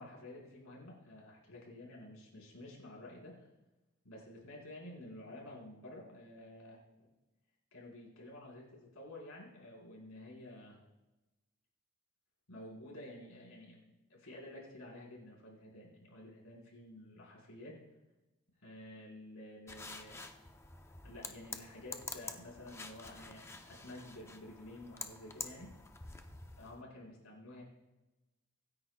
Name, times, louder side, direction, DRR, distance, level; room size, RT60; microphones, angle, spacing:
voice 1, 0.0-3.4 4.0-7.1 7.7-10.8 12.5-17.8 18.6-20.3 21.0-25.7 26.6-27.6, left 1 dB, 80° left, -3 dB, 4.4 m, -51 dB
sound 1, 19.7-26.8, left 3 dB, 10° left, 0.6 m, -48 dB
24.5 x 9.9 x 2.2 m, 1.1 s
head